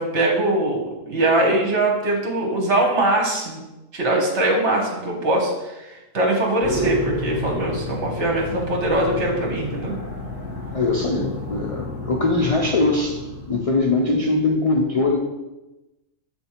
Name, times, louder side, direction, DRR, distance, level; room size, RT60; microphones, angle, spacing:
voice 1, 0.0-3.6 3.9-10.0, right 1 dB, 60° right, 0 dB, 1.5 m, -22 dB
sound 1, 6.6-14.3, left 1 dB, 25° right, 1.7 m, -31 dB
voice 2, 10.7-13.2 13.5-15.2, left 3 dB, 45° left, -1 dB, 0.5 m, -21 dB
7.3 x 3.4 x 4.3 m, 1.0 s
omnidirectional pair, 1.4 m